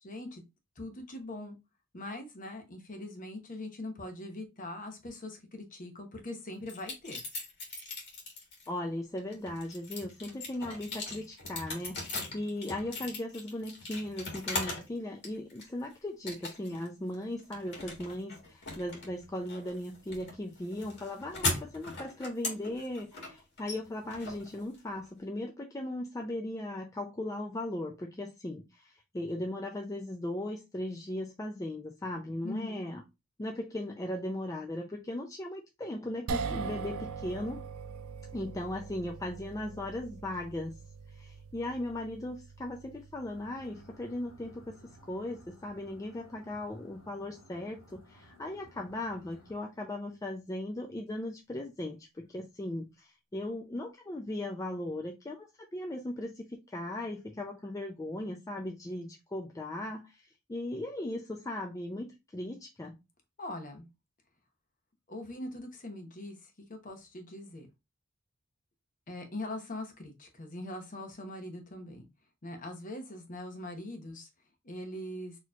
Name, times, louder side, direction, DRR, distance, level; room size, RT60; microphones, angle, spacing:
voice 1, 0.0-0.4 0.8-1.6 1.9-7.2 32.4-32.8 63.4-63.9 65.1-67.7 69.1-72.1 72.4-74.3 74.6-75.3, left 1 dB, 40° left, 0.9 m, -42 dB
sound 1, 6.7-8.7 9.2-14.9 15.2-15.8 16.3-16.9 17.1-25.1, left 2 dB, 55° left, 1.5 m, -39 dB
voice 2, 8.7-33.0 33.4-37.6 38.3-40.7 41.1-44.8 45.1-63.0, left 1 dB, 15° left, 0.4 m, -38 dB
sound 2, 36.3-48.6, right 5 dB, 85° right, 0.4 m, -43 dB
sound 3, 43.2-49.6, left 1 dB, 85° left, 1.8 m, -58 dB
4.3 x 2.9 x 2.3 m
head